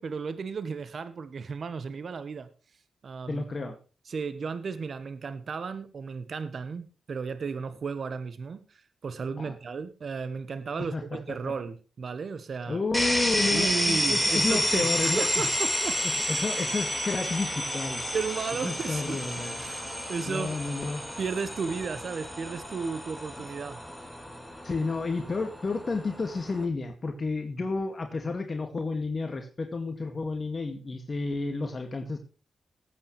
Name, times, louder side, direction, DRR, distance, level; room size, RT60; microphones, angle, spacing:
voice 1, 0.0-2.5 3.0-3.5 4.1-12.8 13.5-16.0 16.3-16.4 18.1-19.2 19.6-20.6 21.2-24.1, right 5 dB, 60° right, 12 dB, 1.2 m, -34 dB
voice 2, 3.3-3.8 9.4-9.6 10.8-11.4 12.7-15.5 16.0-18.0 18.6-19.6 20.3-21.0 24.6-32.2, left 3 dB, 45° left, 5 dB, 2.0 m, -31 dB
sound 1, 12.9-26.6, equal, ahead, 4.2 m, -30 dB
19.5 x 8.7 x 3.2 m, 0.35 s
cardioid pair, 65°, 0 cm